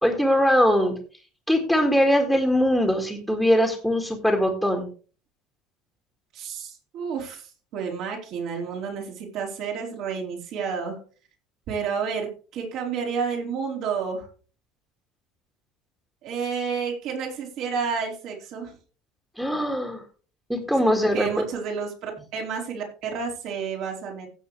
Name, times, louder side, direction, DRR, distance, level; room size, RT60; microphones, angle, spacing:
voice 1, 0.0-0.9 1.5-4.9 19.4-20.0 20.5-21.3, equal, ahead, 0 dB, 2.0 m, -21 dB
voice 2, 6.3-11.0 11.7-14.3 16.2-18.7 21.1-24.3, right 6 dB, 55° right, 0 dB, 4.4 m, -30 dB
16.0 x 6.9 x 3.3 m, 0.38 s
cardioid pair, 140°, 0 cm